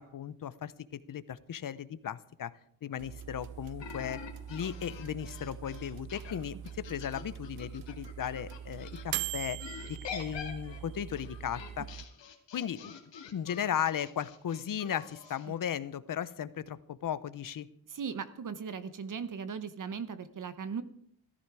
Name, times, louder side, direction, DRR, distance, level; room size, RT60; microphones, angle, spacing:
voice 1, 0.0-2.5 2.8-4.2 4.5-9.6 9.9-11.9 12.5-13.0 13.3-17.7, left 9 dB, 45° left, 15 dB, 0.8 m, -36 dB
sound 1, 3.0-12.1, right 10 dB, 75° right, 0.6 m, -42 dB
sound 2, 3.8-9.0 9.6-15.5, left 7 dB, 70° left, 2.4 m, -46 dB
voice 2, 17.9-20.8, right 6 dB, 45° right, 12 dB, 0.9 m, -38 dB
14.5 x 14.0 x 4.8 m, 0.68 s
cardioid pair, 125°, 45 cm